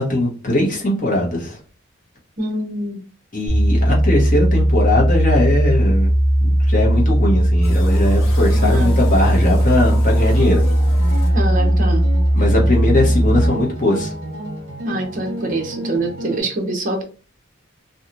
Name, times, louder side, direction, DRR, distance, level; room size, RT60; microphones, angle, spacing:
voice 1, 0.0-1.6 3.3-6.1 6.4-10.6 12.3-14.1, left 1 dB, 40° left, -2 dB, 0.9 m, -20 dB
voice 2, 2.4-3.0 8.5-8.9 11.3-12.1 14.8-17.0, right 2 dB, 40° right, 4 dB, 0.6 m, -24 dB
sound 1, 3.5-13.5, right 1 dB, 10° right, 1.0 m, -16 dB
sound 2, 7.6-11.8, left 2 dB, 80° left, 0.8 m, -36 dB
sound 3, 9.0-16.4, right 1 dB, 55° right, 1.1 m, -31 dB
2.9 x 2.4 x 2.5 m, 0.38 s
head